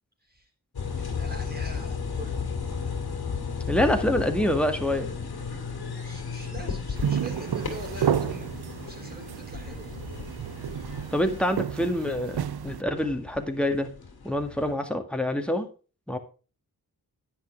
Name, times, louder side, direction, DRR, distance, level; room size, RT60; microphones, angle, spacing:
sound 1, 0.7-14.7, left 5 dB, 90° left, 2.4 m, -35 dB
voice 1, 0.9-2.4 6.0-10.0, right 1 dB, 25° right, 1 dB, 4.0 m, -43 dB
voice 2, 3.7-5.1 11.1-13.9 14.2-15.7 16.1-16.2, left 1 dB, 5° left, 5 dB, 2.0 m, -26 dB
sound 2, 7.0-12.8, right 9 dB, 90° right, 0.7 m, -31 dB
10.5 x 8.8 x 3.6 m, 0.35 s
wide cardioid pair, 75°, 37 cm